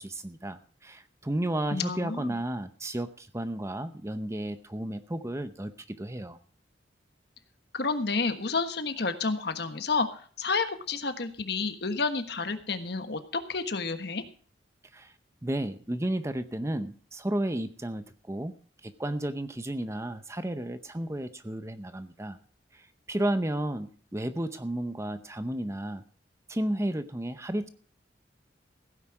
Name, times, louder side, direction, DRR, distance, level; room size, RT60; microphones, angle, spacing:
voice 1, 0.0-6.4 14.9-15.1 15.4-18.5 18.8-22.4 22.7-26.0 26.5-27.7, right 1 dB, 15° right, 11 dB, 0.7 m, -33 dB
voice 2, 1.7-2.4 7.7-10.1 10.4-14.2, left 4 dB, 60° left, 9 dB, 1.4 m, -30 dB
16.0 x 9.4 x 4.8 m, 0.43 s
head